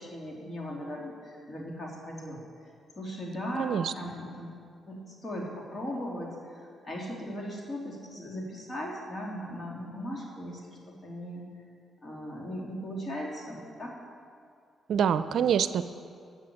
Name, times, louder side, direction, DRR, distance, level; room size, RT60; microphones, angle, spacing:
voice 1, 0.0-2.4 3.0-4.5 4.9-11.5 12.0-13.9, equal, 40° left, -2 dB, 3.4 m, -38 dB
voice 2, 3.6-3.9 14.9-15.9, right 8 dB, 70° right, 12 dB, 0.5 m, -26 dB
13.0 x 7.5 x 8.7 m, 2.3 s
supercardioid pair, 60°, 0 cm